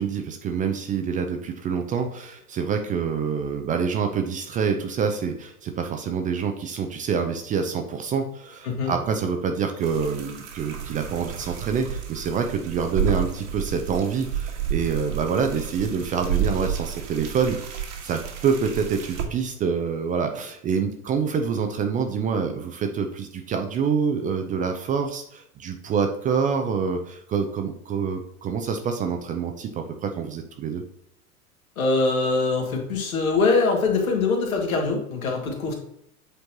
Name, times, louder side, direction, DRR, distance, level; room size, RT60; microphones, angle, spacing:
voice 1, 0.0-17.8 18.0-30.8, right 6 dB, 20° right, 5 dB, 0.5 m, -26 dB
sound 1, 9.8-19.2, right 8 dB, 50° right, 1.4 m, -31 dB
voice 2, 31.8-35.7, left 3 dB, 70° left, 0 dB, 1.9 m, -23 dB
8.0 x 4.4 x 2.8 m, 0.74 s
figure-of-eight pair, 90°, 43 cm